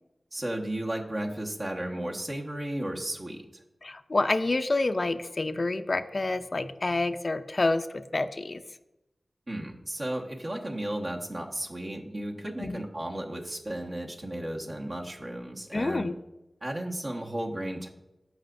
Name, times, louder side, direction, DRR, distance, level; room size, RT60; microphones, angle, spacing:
voice 1, 0.3-3.4 9.5-16.1 16.6-17.9, right 1 dB, 50° right, -1 dB, 1.4 m, -34 dB
voice 2, 3.8-8.6 12.6-12.8 15.7-16.2, left 2 dB, 55° left, 10 dB, 0.4 m, -28 dB
15.0 x 4.9 x 2.6 m, 0.91 s
cardioid pair, 40°, 0 cm